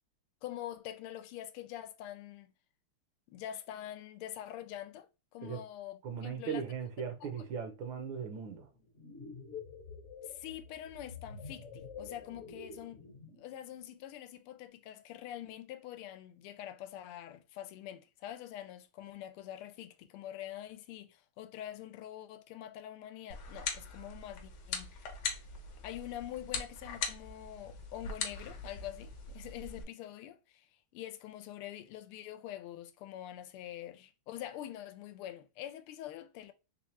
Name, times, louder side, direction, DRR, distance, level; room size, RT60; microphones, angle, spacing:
voice 1, 0.4-2.5 3.3-6.6 7.2-7.5 10.2-13.0 13.4-25.2 25.8-30.7 30.9-36.5, left 12 dB, 80° left, 1.4 m, -45 dB
voice 2, 6.0-8.7, right 6 dB, 70° right, 1.3 m, -38 dB
sound 1, 8.7-13.5, left 5 dB, 45° left, 1.0 m, -48 dB
sound 2, 23.3-29.8, left 5 dB, 60° left, 1.2 m, -41 dB
3.5 x 3.2 x 3.1 m
omnidirectional pair, 2.4 m